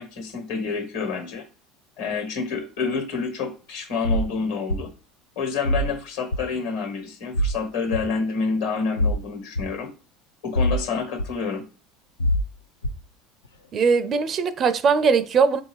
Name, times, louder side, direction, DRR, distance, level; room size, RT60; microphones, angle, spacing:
voice 1, 0.0-1.4 2.0-4.9 5.3-9.9 10.4-11.6, left 5 dB, 70° left, 1.3 m, -28 dB
sound 1, 4.0-4.3 4.7-4.8 5.6-5.9 6.3-6.4 7.3-7.6 7.9-8.0 9.0-9.2 9.6-9.7 10.6-10.8 11.2-11.3 12.2-12.4 12.8-13.0, equal, 90° left, 0.4 m, -22 dB
voice 2, 13.7-15.6, right 5 dB, 40° right, 0.4 m, -20 dB
4.3 x 2.7 x 3.1 m
hypercardioid pair, 70°, 0 cm